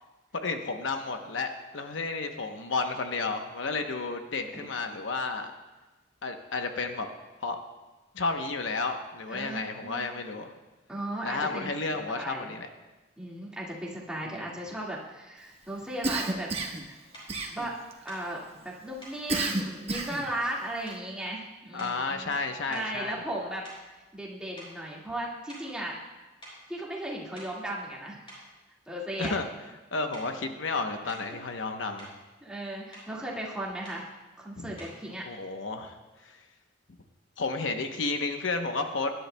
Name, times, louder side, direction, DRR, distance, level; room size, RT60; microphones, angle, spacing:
voice 1, 0.3-5.5 6.2-7.1 7.4-7.6 8.1-10.5 11.2-12.7 14.2-14.5 21.7-23.2 29.2-29.4 29.9-32.1 34.6-34.8 35.3-36.0 36.2-36.4 37.4-39.1, left 3 dB, 75° left, 5 dB, 0.9 m, -32 dB
voice 2, 9.3-10.1 10.9-11.7 12.1-12.5 13.2-17.0 17.5-17.7 18.0-22.4 22.7-23.7 24.1-25.9 26.7-28.2 28.9-29.3 31.3-31.4 32.4-34.1 34.4-35.2, right 1 dB, 5° right, -4 dB, 1.8 m, -36 dB
Cough, 16.0-16.9 17.3-17.9 19.3-20.3, right 2 dB, 30° right, 1.0 m, -30 dB
sound 1, 16.2-16.4 17.1-17.4 18.1-18.3 19.0-19.2 19.9-20.5 20.8-21.2 21.7-22.1 22.7-24.3 24.6-24.8 25.5-25.8 26.4-26.6 27.2-27.6 28.3-28.5 29.2-29.5 30.1-30.3 31.1-31.4 31.7-32.2 32.9-33.1 33.8-34.1 34.8-35.0, equal, 30° left, 4.7 m, -49 dB
20.0 x 11.0 x 2.2 m, 1.1 s
head